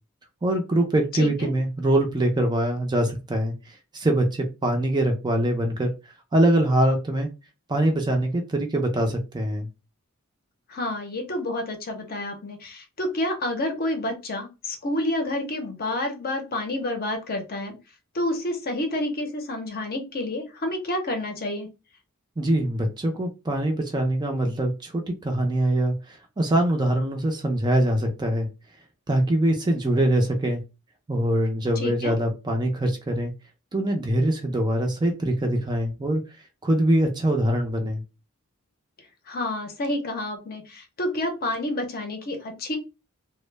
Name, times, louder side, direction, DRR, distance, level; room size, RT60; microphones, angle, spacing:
voice 1, 0.4-5.9 6.3-7.3 7.7-9.7 22.4-28.5 29.1-30.6 31.1-33.3 33.7-36.2 36.6-38.0, right 1 dB, 20° right, 3 dB, 0.4 m, -23 dB
voice 2, 1.2-1.5 10.7-17.7 18.1-21.7 31.8-32.1 39.3-42.8, left 1 dB, 45° left, 4 dB, 0.6 m, -29 dB
2.1 x 2.0 x 3.1 m, 0.28 s
head